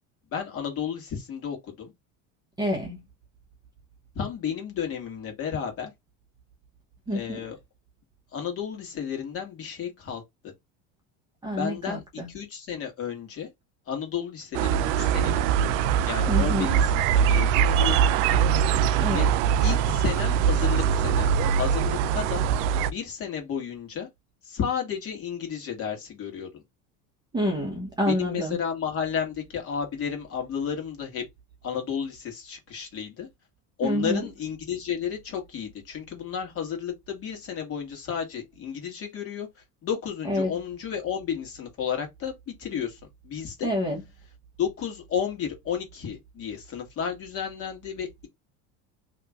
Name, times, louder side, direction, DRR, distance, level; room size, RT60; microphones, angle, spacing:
voice 1, 0.3-1.9 4.1-5.9 7.1-7.6 8.3-10.2 11.5-12.0 12.3-13.5 13.9-15.7 16.0-18.4 19.1-19.3 19.6-22.4 22.9-24.1 24.4-26.6 28.0-31.2 31.6-33.3 33.8-39.5 39.8-43.7 44.6-48.3, left 8 dB, 40° left, 1.6 m, -32 dB
voice 2, 2.6-3.0 7.1-7.4 11.4-12.3 16.3-16.8 19.0-19.3 27.3-28.6 33.8-34.3 40.3-40.5 43.6-44.0, equal, 10° right, 0.8 m, -28 dB
sound 1, 14.5-22.9, right 8 dB, 80° right, 0.5 m, -22 dB
2.9 x 2.5 x 3.4 m
cardioid pair, 140°, 36 cm